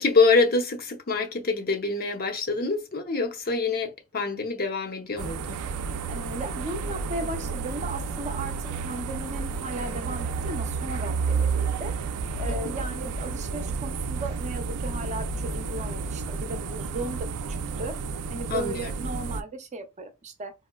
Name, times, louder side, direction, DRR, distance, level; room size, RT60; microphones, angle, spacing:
voice 1, 0.0-5.6 18.5-18.9, left 4 dB, 45° left, 0.7 m, -25 dB
sound 1, 5.2-19.4, right 4 dB, 85° right, 0.4 m, -31 dB
voice 2, 6.1-11.9 12.4-18.0 18.3-20.5, right 2 dB, 30° right, 0.6 m, -36 dB
4.1 x 2.1 x 2.2 m
head